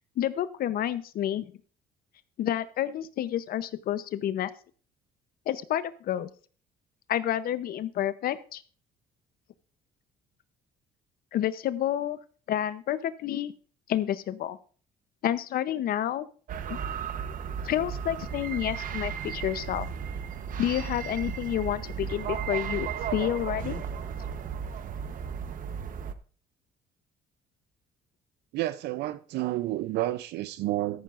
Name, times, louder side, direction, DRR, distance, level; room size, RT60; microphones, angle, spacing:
voice 1, 0.2-1.5 2.4-4.5 5.5-6.3 7.1-8.6 11.3-12.2 12.5-13.5 13.9-14.6 15.2-16.3 16.7-16.8 17.6-19.9 20.6-23.8, left 11 dB, 60° left, 0.7 m, -29 dB
sound 1, 16.5-26.1, right 7 dB, 55° right, 1.0 m, -35 dB
voice 2, 28.5-31.0, right 16 dB, 75° right, 0.5 m, -30 dB
13.5 x 11.5 x 2.5 m
cardioid pair, 110°, 17 cm